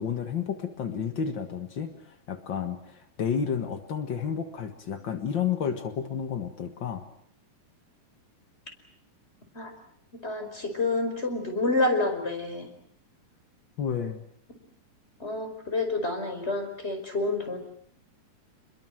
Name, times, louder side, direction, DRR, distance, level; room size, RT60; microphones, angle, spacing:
voice 1, 0.0-7.0 13.8-14.2, left 7 dB, 70° left, 7 dB, 1.1 m, -31 dB
voice 2, 10.2-12.7 15.2-17.6, left 2 dB, 15° left, 6 dB, 4.9 m, -28 dB
29.5 x 22.0 x 7.8 m, 0.67 s
omnidirectional pair, 4.7 m